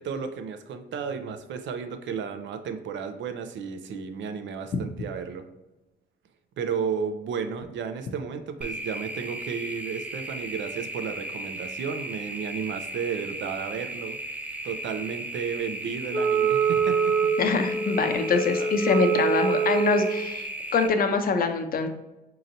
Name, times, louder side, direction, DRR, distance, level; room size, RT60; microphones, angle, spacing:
voice 1, 0.0-5.5 6.6-14.2 14.6-17.3 18.1-18.7, right 6 dB, 70° right, 8 dB, 0.5 m, -33 dB
sound 1, 8.6-20.9, right 1 dB, 5° right, 0.4 m, -36 dB
Wind instrument woodwind instrument, 16.1-20.3, right 5 dB, 90° right, 1.3 m, -25 dB
voice 2, 17.4-21.9, left 4 dB, 45° left, 6 dB, 0.6 m, -24 dB
5.1 x 2.9 x 2.6 m, 1.0 s
cardioid pair, 90°, 20 cm